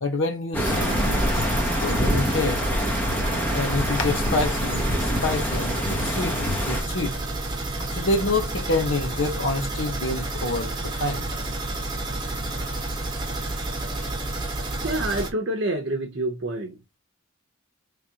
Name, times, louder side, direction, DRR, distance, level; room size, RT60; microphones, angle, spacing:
voice 1, 0.0-1.2 1.7-2.6 3.5-7.2 7.9-11.3, left 2 dB, 65° left, 1.0 m, -27 dB
sound 1, 0.5-6.8, equal, 10° left, 0.8 m, -25 dB
sound 2, 0.6-15.3, right 2 dB, 20° right, 1.1 m, -30 dB
voice 2, 14.8-16.8, right 1 dB, 60° right, 0.8 m, -27 dB
4.9 x 3.3 x 2.9 m
head